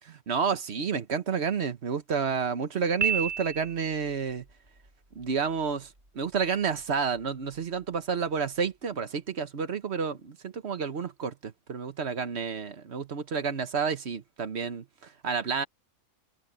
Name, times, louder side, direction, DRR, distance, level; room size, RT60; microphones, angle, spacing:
voice 1, 0.1-4.4 5.1-5.9 6.1-14.8 15.2-15.6, right 6 dB, 50° right, 1.3 m, -30 dB
Piano, 3.0-4.1, right 7 dB, 30° right, 7.8 m, -30 dB
omnidirectional pair, 1.5 m